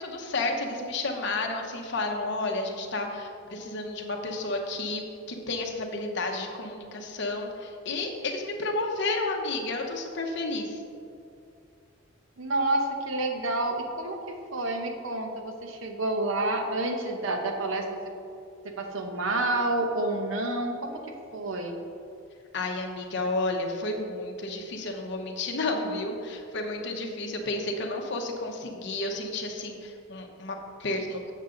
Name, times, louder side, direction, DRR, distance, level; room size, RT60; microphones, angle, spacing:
voice 1, 0.0-10.8 22.5-31.3, left 2 dB, 55° left, 1 dB, 0.8 m, -31 dB
voice 2, 12.4-18.1 18.6-21.8, right 2 dB, 65° right, 4 dB, 0.8 m, -29 dB
7.3 x 6.6 x 3.8 m, 2.5 s
head